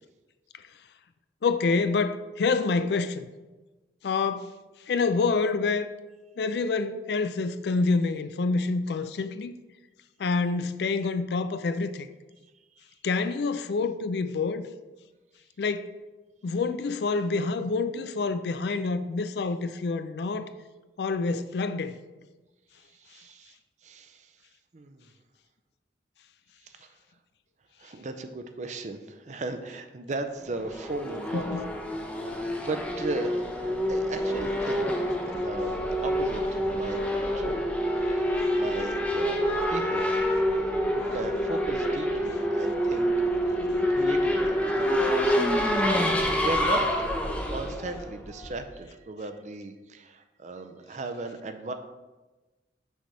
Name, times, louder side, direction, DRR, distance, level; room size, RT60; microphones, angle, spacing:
voice 1, 1.4-3.3 4.0-4.5 4.9-5.9 6.4-9.5 10.2-12.1 13.0-14.7 15.6-15.9 16.4-20.5 21.0-21.9 31.3-31.6, left 4 dB, 65° left, 0.4 m, -27 dB
voice 2, 22.9-23.6 23.8-24.3 24.7-25.1 26.6-26.9 27.8-31.7 32.2-34.9 35.3-36.4 36.7-37.6 38.1-39.4 39.7-40.1 40.9-43.1 43.5-43.7 43.9-51.7, right 2 dB, 40° right, 0.5 m, -37 dB
Race car auto racing / Accelerating revving vroom, 30.5-48.7, equal, 10° left, 0.6 m, -27 dB
6.3 x 3.4 x 5.4 m
head